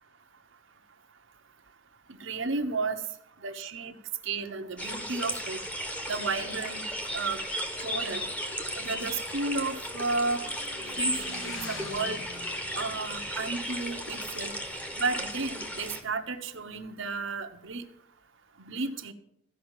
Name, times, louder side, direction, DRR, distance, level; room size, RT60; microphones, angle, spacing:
voice 1, 2.2-3.0 3.4-3.9 4.2-5.6 6.1-6.9 7.1-7.4 7.8-8.2 8.8-10.4 11.0-12.2 12.7-14.5 15.0-17.8 18.6-19.1, right 3 dB, 65° right, 6 dB, 1.1 m, -33 dB
sound 1, 4.8-16.0, equal, 5° left, 1.2 m, -35 dB
Motorcycle / Engine, 7.5-16.8, left 2 dB, 70° left, 2.0 m, -47 dB
14.5 x 5.7 x 9.1 m, 0.73 s
head